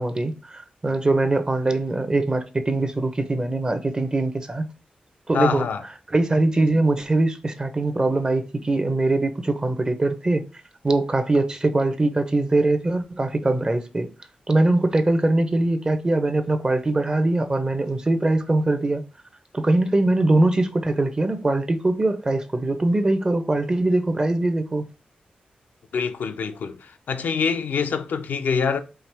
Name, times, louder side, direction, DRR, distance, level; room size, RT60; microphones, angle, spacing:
voice 1, 0.0-4.7 5.3-5.7 6.1-10.5 10.8-14.1 14.5-19.0 19.5-24.8, right 2 dB, 30° right, 0.7 m, -22 dB
voice 2, 5.3-5.8 25.9-28.8, left 6 dB, 85° left, 0.5 m, -25 dB
4.6 x 2.9 x 3.3 m
cardioid pair, 80°, 3 cm